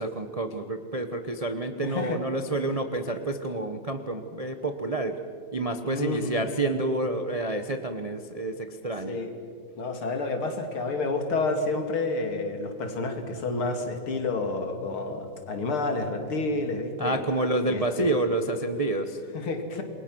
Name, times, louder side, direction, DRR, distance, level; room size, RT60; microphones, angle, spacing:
voice 1, 0.0-5.2 5.5-9.2 17.0-19.2, right 2 dB, 35° right, 7 dB, 0.5 m, -29 dB
voice 2, 1.8-2.2 5.8-6.4 9.1-9.3 9.8-17.2 17.6-18.1 19.3-19.8, left 3 dB, 80° left, 5 dB, 3.2 m, -29 dB
28.0 x 22.0 x 6.2 m, 2.4 s
omnidirectional pair, 2.3 m